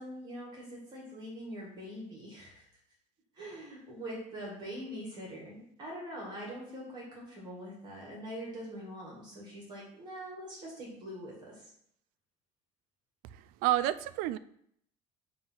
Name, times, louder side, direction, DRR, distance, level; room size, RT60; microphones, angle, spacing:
voice 1, 0.0-2.6 3.3-11.7, equal, 30° right, -3 dB, 2.0 m, -43 dB
voice 2, 13.3-14.4, right 13 dB, 70° right, 15 dB, 0.4 m, -30 dB
7.0 x 2.8 x 5.8 m, 0.69 s
cardioid pair, 165°, 15 cm